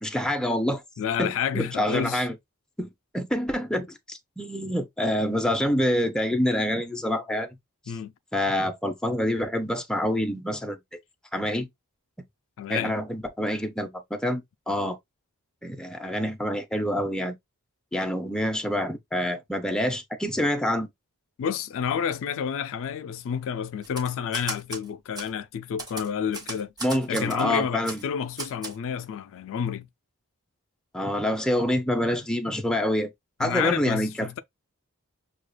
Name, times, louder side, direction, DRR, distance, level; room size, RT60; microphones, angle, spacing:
voice 1, 0.0-0.8 1.2-2.4 2.8-7.6 8.3-10.8 11.3-11.7 12.7-15.0 15.6-17.4 17.9-20.9 26.8-28.0 30.9-33.1 33.4-34.3, left 1 dB, 5° left, 0.5 m, -27 dB
voice 2, 1.0-2.3 7.9-8.1 12.6-12.9 21.4-26.7 27.1-29.9 33.4-34.4, left 8 dB, 65° left, 0.3 m, -30 dB
Typewriter, 23.8-24.8 25.2-25.3 25.8-27.4 27.8-28.0 28.4-28.8, right 2 dB, 20° right, 1.3 m, -36 dB
6.3 x 2.3 x 2.2 m
head